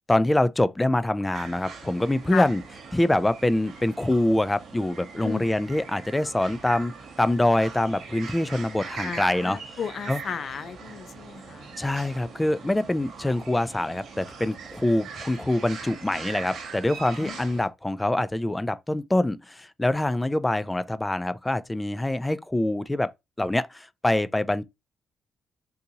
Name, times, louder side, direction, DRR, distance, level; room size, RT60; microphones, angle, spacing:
voice 1, 0.1-2.6 2.9-6.9 7.2-9.6 10.1-10.2 11.8-23.1 23.4-24.6, left 1 dB, 10° left, 0.3 m, -25 dB
sound 1, 1.3-17.7, right 5 dB, 75° right, 1.1 m, -41 dB
voice 2, 9.0-11.8 17.2-17.4, left 7 dB, 55° left, 0.6 m, -34 dB
3.8 x 2.7 x 2.8 m
cardioid pair, 90°, 0 cm